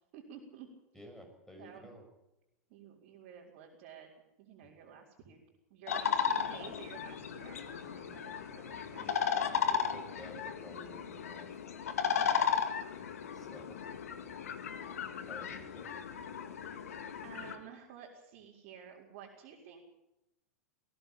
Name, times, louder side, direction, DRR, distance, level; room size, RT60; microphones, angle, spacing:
voice 1, 0.1-0.7 1.6-1.9 2.7-4.1 4.4-5.4 5.7-9.5 12.2-12.6 13.4-13.5 17.2-19.8, right 7 dB, 50° right, -5 dB, 4.5 m, -52 dB
voice 2, 0.9-2.0 4.6-4.7 7.7-8.2 8.8-9.2 9.5-11.5 13.3-13.8 15.2-16.0, equal, 5° left, 4 dB, 6.3 m, -53 dB
sound 1, 5.9-17.6, left 7 dB, 70° left, 2.1 m, -35 dB
20.0 x 16.5 x 8.7 m, 0.91 s
figure-of-eight pair, 95°, 8 cm